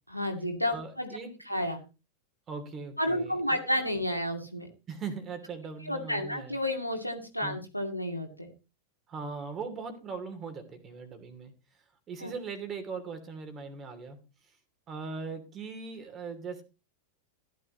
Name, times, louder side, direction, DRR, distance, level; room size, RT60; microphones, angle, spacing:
voice 1, 0.1-1.1 1.5-1.8 3.0-4.7 5.9-8.5 12.2-12.3, left 1 dB, 90° left, 3 dB, 2.3 m, -31 dB
voice 2, 0.7-1.6 2.5-3.7 4.9-6.6 7.4-7.6 9.1-11.5 12.1-14.2 14.9-16.6, right 5 dB, 25° right, 8 dB, 2.9 m, -40 dB
15.0 x 11.0 x 3.0 m, 0.30 s
figure-of-eight pair, 90°, 0 cm